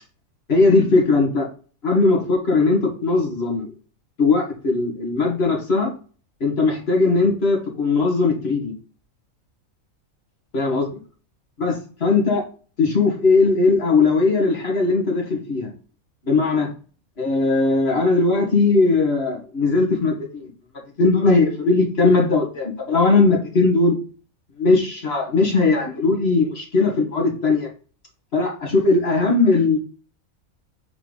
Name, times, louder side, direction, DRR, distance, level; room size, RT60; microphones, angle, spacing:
voice 1, 0.5-1.5 1.8-3.7 4.2-5.9 6.4-8.7 10.5-10.9 11.6-12.4 12.8-15.7 16.3-16.7 17.2-20.5 21.0-24.0 24.6-27.7 28.3-29.8, left 3 dB, 45° left, 1 dB, 2.0 m, -19 dB
4.4 x 4.1 x 5.2 m, 0.37 s
omnidirectional pair, 1.5 m